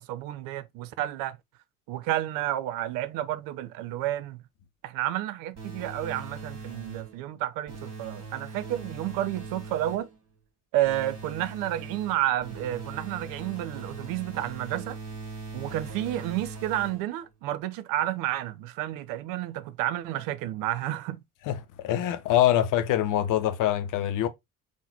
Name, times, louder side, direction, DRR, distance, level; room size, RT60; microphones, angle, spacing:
voice 1, 0.0-1.4 1.9-4.4 4.8-10.1 10.7-15.0 15.5-21.2, right 14 dB, 60° right, 0.5 m, -31 dB
sound 1, 5.6-7.2 7.7-10.2 10.8-17.2, right 3 dB, 40° right, 2.2 m, -40 dB
voice 2, 21.4-24.3, left 12 dB, 55° left, 0.8 m, -24 dB
3.9 x 2.9 x 4.0 m
figure-of-eight pair, 45°, 39 cm